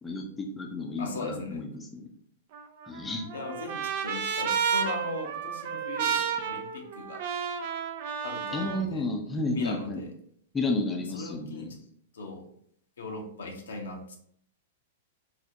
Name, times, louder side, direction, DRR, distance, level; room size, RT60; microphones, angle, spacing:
voice 1, 0.0-2.1 2.8-3.3 8.5-10.0 10.5-11.7, left 2 dB, 15° left, 1 dB, 0.5 m, -32 dB
voice 2, 1.0-1.6 3.3-7.3 8.2-9.1 9.5-10.1 11.1-11.8 12.1-12.5 13.0-14.2, left 3 dB, 70° left, 2 dB, 0.7 m, -39 dB
Trumpet, 2.5-8.8, right 7 dB, 50° right, 0.4 m, -31 dB
4.2 x 2.0 x 2.6 m, 0.64 s
figure-of-eight pair, 105°, 0 cm